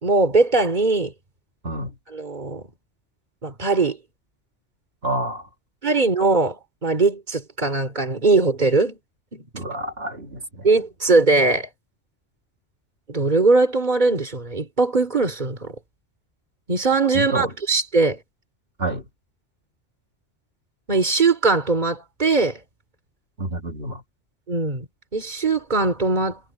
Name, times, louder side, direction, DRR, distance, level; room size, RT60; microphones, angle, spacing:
voice 1, 0.0-1.1 2.1-2.6 3.4-4.0 5.8-9.0 9.3-9.4 10.6-11.7 13.1-15.7 16.7-18.2 20.9-22.6 24.5-24.8 25.1-26.4, right 3 dB, 40° right, 3.1 m, -20 dB
voice 2, 5.0-5.4 9.5-10.7 17.1-17.5 18.8-19.0 23.4-24.0, right 2 dB, 55° right, 2.9 m, -28 dB
omnidirectional pair, 1.2 m